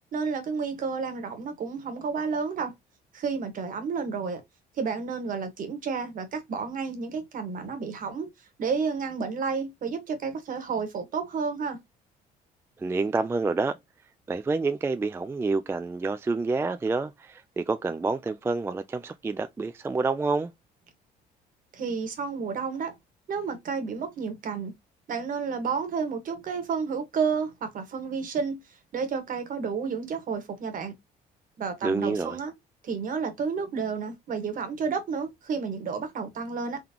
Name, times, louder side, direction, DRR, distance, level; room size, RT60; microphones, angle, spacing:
voice 1, 0.1-2.7 3.1-4.4 4.8-8.3 8.6-11.8 21.7-22.9 23.3-24.7 25.1-28.6 28.9-30.9 31.6-32.5 32.8-36.8, right 5 dB, 55° right, 1.4 m, -31 dB
voice 2, 12.8-13.8 14.3-20.5 31.8-32.4, right 3 dB, 15° right, 0.3 m, -28 dB
3.8 x 3.6 x 2.9 m
cardioid pair, 105°, 17 cm